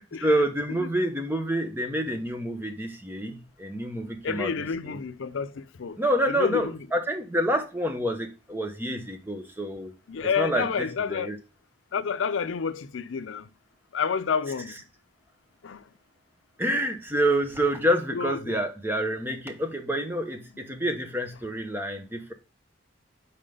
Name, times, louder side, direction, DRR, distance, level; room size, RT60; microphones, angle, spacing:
voice 1, 0.2-4.5 4.9-5.0 6.0-9.9 10.4-11.4 16.6-22.3, right 1 dB, 10° right, 0.9 m, -28 dB
voice 2, 4.2-6.0 6.3-6.8 10.1-11.3 11.9-13.5 13.9-14.7 15.6-15.8 18.1-18.5, left 6 dB, 85° left, 0.5 m, -29 dB
5.8 x 4.1 x 5.1 m
head